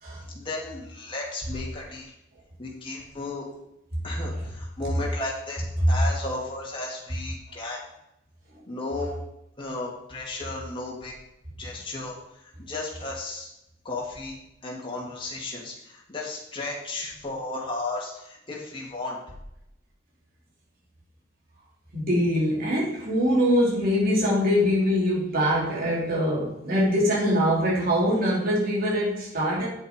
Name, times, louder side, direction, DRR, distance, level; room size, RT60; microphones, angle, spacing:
voice 1, 0.3-2.1 2.6-3.5 4.0-7.8 8.7-9.1 9.6-11.1 11.6-12.2 12.6-13.5 13.8-19.2, left 2 dB, 30° left, -3 dB, 3.1 m, -34 dB
voice 2, 21.9-29.7, equal, 55° right, -5 dB, 4.2 m, -23 dB
9.7 x 7.8 x 5.0 m, 0.83 s
head